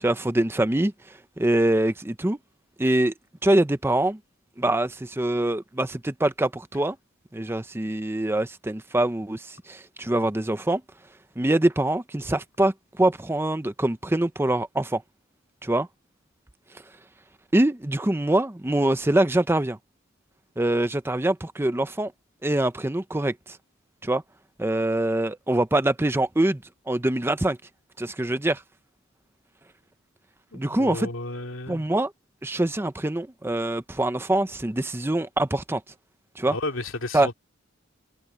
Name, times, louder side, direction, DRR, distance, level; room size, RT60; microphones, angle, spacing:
voice 1, 0.0-0.9 1.4-2.4 2.8-3.1 3.4-4.2 4.6-7.0 7.3-10.8 11.4-15.0 15.6-15.9 17.5-19.8 20.6-22.1 22.4-23.6 24.0-24.2 24.6-26.6 26.9-27.6 28.0-28.6 30.5-31.1 31.7-32.1 32.4-35.8 36.4-36.6 37.1-37.3, right 1 dB, 10° right, 0.6 m, -24 dB
voice 2, 30.5-31.8 36.5-37.3, left 2 dB, 85° left, 2.4 m, -33 dB
head